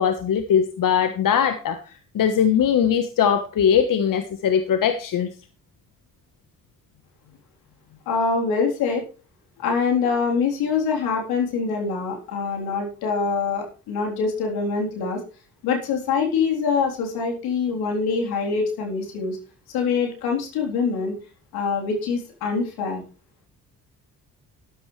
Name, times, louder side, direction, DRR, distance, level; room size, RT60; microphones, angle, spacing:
voice 1, 0.0-1.8 2.1-5.3, left 8 dB, 60° left, 9 dB, 1.3 m, -20 dB
voice 2, 8.1-9.0 9.6-15.2 15.6-19.4 19.7-21.1 21.5-23.0, left 5 dB, 80° left, 1 dB, 3.7 m, -24 dB
13.0 x 11.5 x 3.3 m, 0.35 s
supercardioid pair, 55°, 37 cm